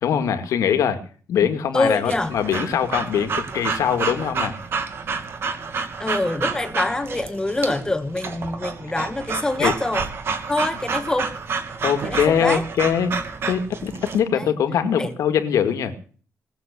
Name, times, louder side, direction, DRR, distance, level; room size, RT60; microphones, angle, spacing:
voice 1, 0.0-1.0 1.3-4.6 9.6-9.7 11.8-13.1 13.5-15.9, left 8 dB, 80° left, 8 dB, 2.2 m, -22 dB
voice 2, 1.7-2.3 6.0-10.1 10.5-11.4 12.0-12.6 14.3-14.5 15.0-15.1, left 2 dB, 15° left, 10 dB, 1.3 m, -25 dB
Breathing / Dog, 2.1-14.2, right 5 dB, 45° right, 2.5 m, -29 dB
19.5 x 7.7 x 8.4 m, 0.42 s
cardioid pair, 150°, 6 cm